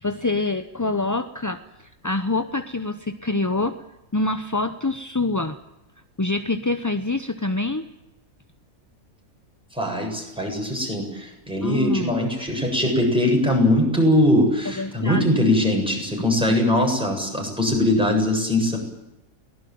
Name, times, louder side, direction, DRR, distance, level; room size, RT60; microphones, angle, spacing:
voice 1, 0.0-3.8 4.1-5.6 6.2-7.8 11.6-12.2 14.7-15.2, left 2 dB, 20° left, 9 dB, 0.6 m, -26 dB
voice 2, 9.7-18.8, left 1 dB, 5° right, 0 dB, 7.6 m, -21 dB
23.0 x 18.5 x 9.4 m, 0.92 s
omnidirectional pair, 1.5 m